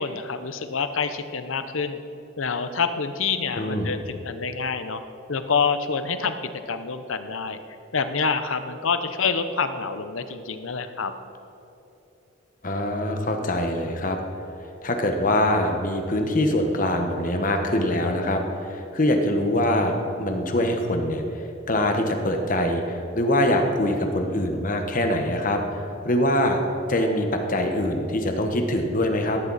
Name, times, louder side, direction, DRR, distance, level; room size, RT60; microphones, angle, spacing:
voice 1, 0.0-2.0 2.4-5.0 5.3-7.6 7.9-11.1, left 5 dB, 80° left, 10 dB, 0.8 m, -27 dB
voice 2, 3.6-3.9 12.6-14.2 14.8-25.6 26.0-26.6 26.9-29.4, left 1 dB, 40° left, 4 dB, 1.3 m, -23 dB
18.0 x 13.5 x 4.2 m, 2.9 s
head